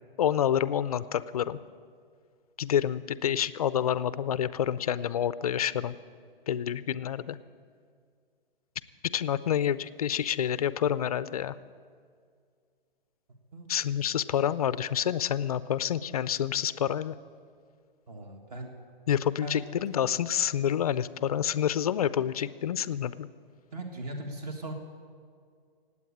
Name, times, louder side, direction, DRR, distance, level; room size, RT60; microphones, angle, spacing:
voice 1, 0.2-1.6 2.6-6.0 6.5-7.4 9.1-11.6 13.7-17.1 19.1-23.3, left 9 dB, 40° left, 16 dB, 0.4 m, -28 dB
voice 2, 18.1-18.7 19.4-19.6 23.7-24.7, right 1 dB, 40° right, 4 dB, 1.8 m, -38 dB
18.0 x 8.6 x 8.6 m, 2.1 s
hypercardioid pair, 155°, 30 cm